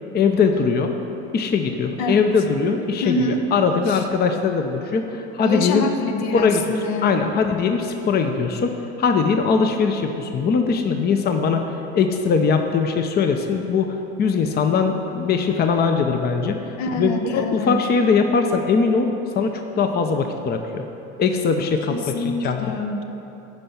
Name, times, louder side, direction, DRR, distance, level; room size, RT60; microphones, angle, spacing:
voice 1, 0.1-0.9 1.3-5.9 6.3-6.6 7.0-16.6 17.0-20.8 21.2-22.7, left 5 dB, 30° left, 5 dB, 0.7 m, -21 dB
voice 2, 3.0-3.4 3.9-4.0 5.4-7.1 16.8-17.8 21.9-23.0, left 2 dB, 60° left, 5 dB, 0.9 m, -25 dB
11.0 x 4.6 x 5.7 m, 3.0 s
hypercardioid pair, 85°, 32 cm